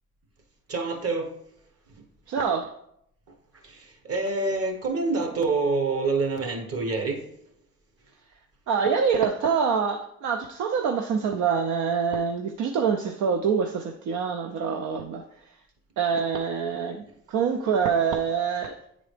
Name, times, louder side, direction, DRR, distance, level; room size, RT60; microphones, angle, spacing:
voice 1, 0.7-1.3 3.3-7.3, right 3 dB, 50° right, 1.3 m, -27 dB
voice 2, 2.3-2.7 8.7-15.2 16.0-18.8, right 6 dB, 75° right, 0.5 m, -25 dB
8.9 x 4.0 x 3.3 m
cardioid pair, 90°, 30 cm